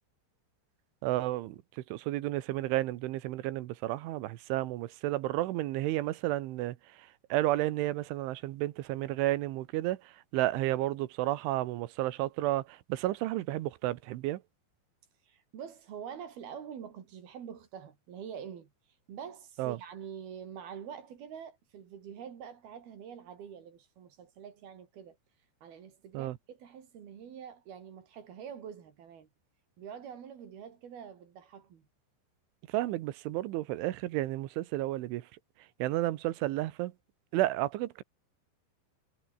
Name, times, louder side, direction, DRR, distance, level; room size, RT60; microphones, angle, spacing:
voice 1, 1.0-14.4 19.6-19.8 26.1-26.4 32.7-35.3 35.8-36.9 37.3-38.0, right 16 dB, 85° right, 3.6 m, -32 dB
voice 2, 15.2-18.7 19.1-25.2 25.6-29.3 29.8-31.9, right 8 dB, 55° right, 4.3 m, -46 dB
omnidirectional pair, 5.4 m